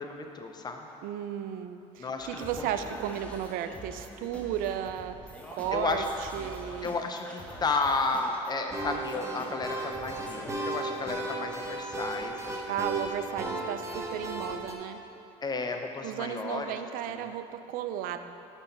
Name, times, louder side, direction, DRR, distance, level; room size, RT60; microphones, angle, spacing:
voice 1, 0.0-0.9 2.0-2.8 5.7-6.1 6.8-12.8 15.4-16.7 17.1-17.3, left 3 dB, 25° left, 4 dB, 0.7 m, -33 dB
voice 2, 1.0-5.2 5.5-6.0 6.3-6.9 12.7-15.0 16.0-18.3, right 10 dB, 65° right, 10 dB, 0.4 m, -34 dB
Singing, 2.2-11.3, equal, 10° left, 1.0 m, -45 dB
sound 1, 8.7-14.7, right 2 dB, 20° right, 1.0 m, -35 dB
6.0 x 5.6 x 5.3 m, 2.9 s
supercardioid pair, 80°, 15 cm